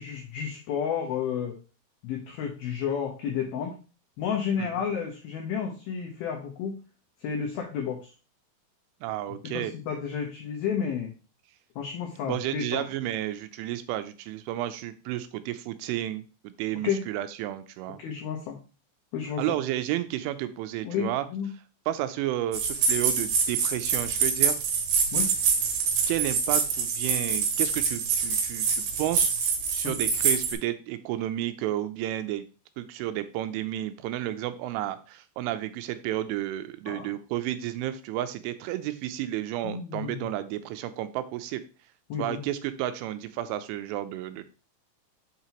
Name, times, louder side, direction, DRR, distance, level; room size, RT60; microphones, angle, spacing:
voice 1, 0.0-1.6 2.0-3.8 4.2-6.8 7.2-8.1 9.5-11.1 11.8-12.9 16.8-17.0 18.0-18.6 19.1-19.4 20.8-21.5 25.1-25.3 29.8-29.9 36.9-37.1 39.6-40.3 42.1-42.4, left 7 dB, 90° left, 1 dB, 2.1 m, -31 dB
voice 2, 9.0-9.7 12.3-18.0 19.4-21.3 21.9-24.6 26.1-29.3 29.7-32.5 32.8-41.6 42.2-44.4, right 13 dB, 85° right, 11 dB, 2.9 m, -32 dB
sound 1, 22.5-30.5, right 6 dB, 65° right, 2.8 m, -25 dB
7.5 x 5.7 x 2.9 m, 0.34 s
omnidirectional pair, 5.7 m